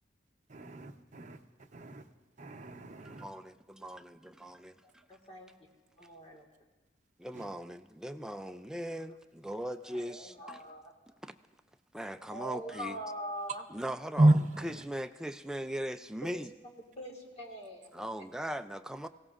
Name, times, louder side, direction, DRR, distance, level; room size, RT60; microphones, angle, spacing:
voice 1, 0.5-2.1 2.4-3.3 7.3-7.5 14.2-14.8, right 1 dB, 45° right, 5 dB, 0.8 m, -29 dB
voice 2, 3.1-5.0 7.2-10.6 11.2-11.3 11.9-13.0 13.7-14.3 14.6-16.5 17.9-19.1, equal, 5° right, 8 dB, 0.4 m, -39 dB
voice 3, 4.8-5.5 6.0-6.7 9.8-10.9 12.3-13.6 16.2-16.3 16.8-17.9, equal, 35° left, 1 dB, 1.8 m, -43 dB
22.0 x 16.0 x 2.5 m, 1.2 s
head